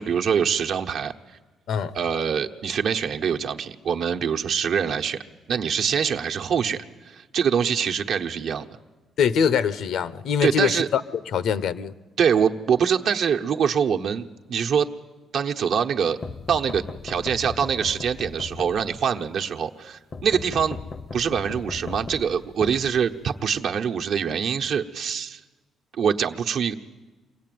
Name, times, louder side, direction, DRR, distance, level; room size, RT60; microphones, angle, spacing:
voice 1, 0.0-1.4 1.9-5.2 5.5-8.7 10.4-10.9 12.2-14.9 15.3-16.2 16.5-20.8 21.1-25.4 25.9-26.7, right 7 dB, 70° right, 5 dB, 1.1 m, -24 dB
voice 2, 9.2-11.0 11.3-11.9, left 7 dB, 75° left, 16 dB, 0.8 m, -23 dB
sound 1, 16.2-19.2 20.1-23.4, left 4 dB, 40° left, 0.6 m, -37 dB
24.0 x 17.0 x 9.4 m, 1.2 s
cardioid pair, 90°, 0 cm